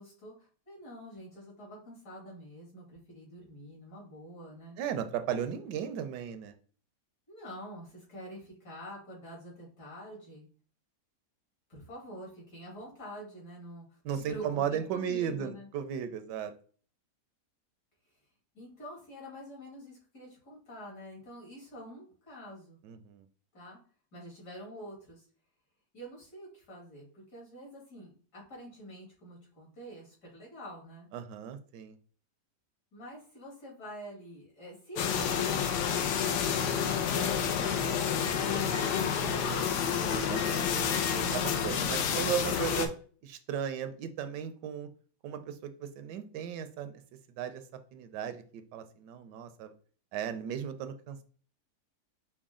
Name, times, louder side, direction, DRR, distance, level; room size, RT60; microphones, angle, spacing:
voice 1, 0.0-4.8 7.3-10.5 11.7-15.7 18.5-22.8 23.5-23.8 24.1-25.3 25.9-31.1 32.9-36.6 37.1-38.4 38.8-40.0 40.4-42.2 42.6-42.8, equal, 65° left, -4 dB, 2.7 m, -47 dB
voice 2, 4.8-6.5 14.0-16.5 22.8-23.2 31.1-32.0 40.3-40.6 41.3-42.9 43.2-44.9 45.2-46.9 47.4-47.6 47.9-49.7 50.1-51.2, right 9 dB, 80° right, 9 dB, 1.2 m, -35 dB
sound 1, 35.0-42.9, left 7 dB, 80° left, 1.2 m, -29 dB
5.8 x 2.2 x 3.6 m, 0.42 s
omnidirectional pair, 1.8 m